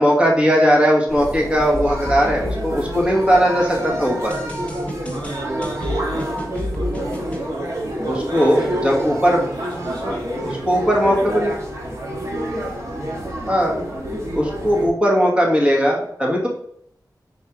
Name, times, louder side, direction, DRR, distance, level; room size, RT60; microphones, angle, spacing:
voice 1, 0.0-4.3 8.1-9.4 10.0-10.2 10.4-11.5 13.5-13.8 14.3-16.5, equal, 15° right, -2 dB, 1.7 m, -18 dB
sound 1, 1.1-14.9, equal, 40° right, 1.8 m, -28 dB
sound 2, 1.7-3.6 4.3-7.4, left 1 dB, 15° left, 1.2 m, -31 dB
voice 2, 5.1-6.9 7.5-9.1 9.4-11.5, right 2 dB, 85° right, -5 dB, 2.5 m, -33 dB
4.7 x 4.4 x 4.9 m, 0.69 s
wide cardioid pair, 85°, 7 cm